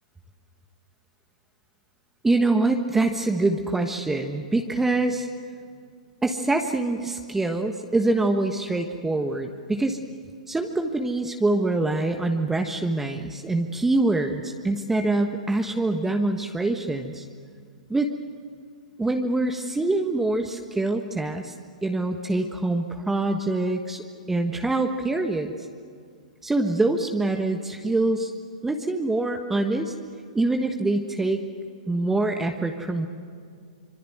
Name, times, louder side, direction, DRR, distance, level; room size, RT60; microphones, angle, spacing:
voice 1, 2.2-5.3 6.2-10.0 10.5-17.3 17.9-18.1 19.0-21.5 21.8-25.7 26.4-28.3 28.6-29.9 30.3-31.4 31.9-33.1, right 2 dB, 10° right, 4 dB, 1.3 m, -25 dB
25.5 x 24.5 x 7.9 m, 2.3 s
hypercardioid pair, 115°, 4 cm